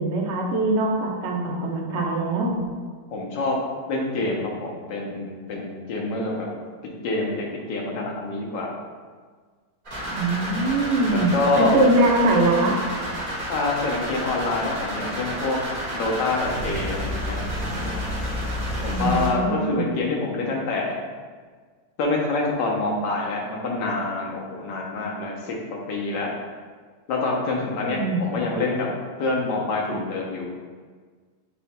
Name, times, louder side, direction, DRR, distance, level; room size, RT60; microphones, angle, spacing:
voice 1, 0.0-2.6 10.1-12.8 18.8-20.0 27.9-28.5, right 2 dB, 60° right, -1 dB, 0.7 m, -22 dB
voice 2, 3.1-3.6 3.9-6.5 7.0-8.7 11.1-11.7 13.5-15.6 15.9-17.4 18.8-21.0 22.0-26.3 27.1-28.9 29.2-30.5, left 3 dB, 80° left, -2 dB, 1.4 m, -26 dB
sound 1, 9.9-19.3, equal, 30° right, 1.5 m, -30 dB
8.0 x 2.8 x 2.2 m, 1.5 s
omnidirectional pair, 1.9 m